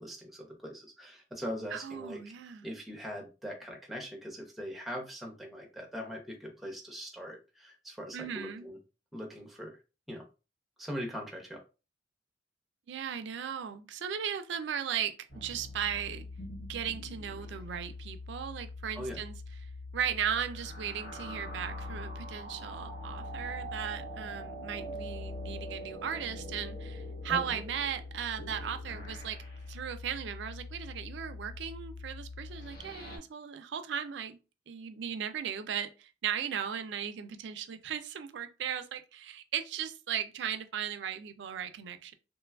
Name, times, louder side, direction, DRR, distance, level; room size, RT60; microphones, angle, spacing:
voice 1, 0.0-2.2 2.6-8.8 9.1-9.8 10.1-10.2 10.8-11.6 18.9-19.2 27.3-27.6, equal, ahead, 0.6 m, -41 dB
voice 2, 1.7-2.7 8.1-8.7 12.9-16.3 16.7-19.3 19.9-29.4 29.7-34.4 34.7-42.1, right 8 dB, 70° right, 0.3 m, -37 dB
sound 1, 15.3-33.2, left 1 dB, 50° left, 0.8 m, -43 dB
3.0 x 2.2 x 2.2 m
head